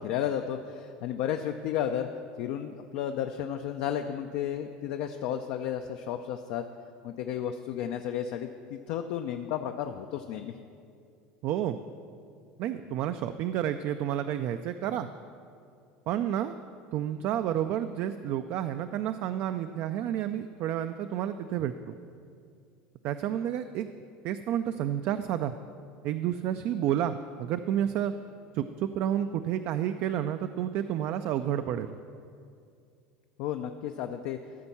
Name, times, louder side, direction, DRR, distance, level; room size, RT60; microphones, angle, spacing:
voice 1, 0.0-2.1 2.4-6.6 7.0-10.5 12.8-13.0 33.4-34.4, left 9 dB, 70° left, 6 dB, 0.4 m, -33 dB
voice 2, 11.4-11.8 12.6-15.1 16.1-16.6 16.9-21.9 23.0-23.9 24.2-25.5 26.0-28.1 28.5-31.9, right 10 dB, 55° right, 9 dB, 0.3 m, -30 dB
13.0 x 4.4 x 7.0 m, 2.4 s
supercardioid pair, 105°, 5 cm